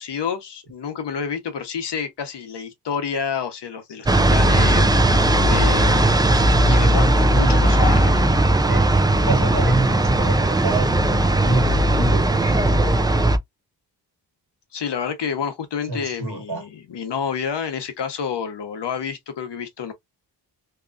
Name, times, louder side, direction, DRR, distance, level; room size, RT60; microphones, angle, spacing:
voice 1, 0.0-8.2 14.7-19.9, left 6 dB, 75° left, 0.9 m, -29 dB
sound 1, 4.1-13.4, right 1 dB, 10° right, 0.3 m, -17 dB
voice 2, 8.7-12.6 15.9-16.6, right 2 dB, 60° right, 1.2 m, -26 dB
2.9 x 2.4 x 2.4 m
wide cardioid pair, 110°, 41 cm